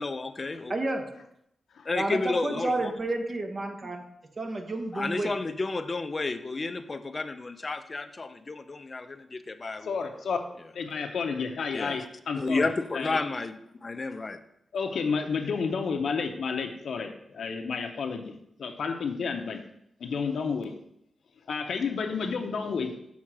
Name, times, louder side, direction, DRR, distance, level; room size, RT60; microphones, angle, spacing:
voice 1, 0.0-0.8 1.9-2.9 4.9-9.9 11.7-12.0 12.4-14.4, left 3 dB, 35° left, 9 dB, 0.5 m, -31 dB
voice 2, 0.7-1.1 1.9-4.0 4.4-5.3, right 2 dB, 45° right, 4 dB, 1.1 m, -30 dB
voice 3, 9.8-10.4 10.7-13.2 14.7-18.3 18.6-19.6 20.0-20.7 21.5-23.0, left 5 dB, 75° left, 4 dB, 0.7 m, -31 dB
6.2 x 3.6 x 6.0 m, 0.77 s
cardioid pair, 75°, 0 cm